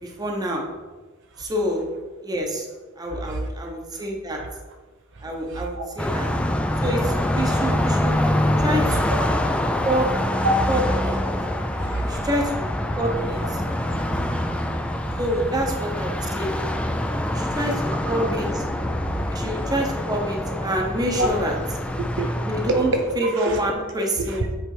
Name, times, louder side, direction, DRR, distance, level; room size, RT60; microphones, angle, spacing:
voice 1, 0.0-0.6 1.4-1.8 2.2-2.7 3.0-4.4 5.2-6.3 6.8-8.2 8.6-9.2 9.8-10.1 10.7-11.2 12.0-13.6 15.2-16.5 17.3-18.6 19.3-21.6 22.4-24.5, equal, 20° right, 1 dB, 0.9 m, -27 dB
voice 2, 3.1-3.4 4.3-4.5 5.1-5.8 9.1-9.3 10.4-10.6 11.8-12.3 13.7-14.5 14.9-15.2 17.5-17.6 19.1-19.2 21.2-21.4 22.2-23.6 24.2-24.5, right 1 dB, 55° right, 3 dB, 0.7 m, -28 dB
Car passing by, 6.0-23.2, left 1 dB, 5° left, 0.4 m, -25 dB
7.9 x 3.4 x 4.8 m, 1.3 s
head